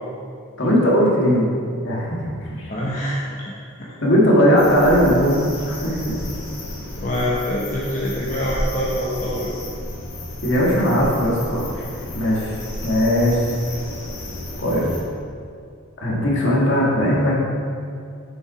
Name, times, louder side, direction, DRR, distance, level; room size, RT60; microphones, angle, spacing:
voice 1, 0.6-1.5 1.8-2.7 4.0-6.2 10.4-11.8 12.1-12.5 12.8-13.4 14.6-14.9 16.0-17.4, equal, 55° left, -4 dB, 1.7 m, -18 dB
voice 2, 2.7-3.5 7.0-9.6, equal, 35° left, -6 dB, 0.9 m, -25 dB
sound 1, 4.6-15.0, left 1 dB, 80° left, 1.9 m, -32 dB
6.7 x 6.1 x 4.8 m, 2.3 s
head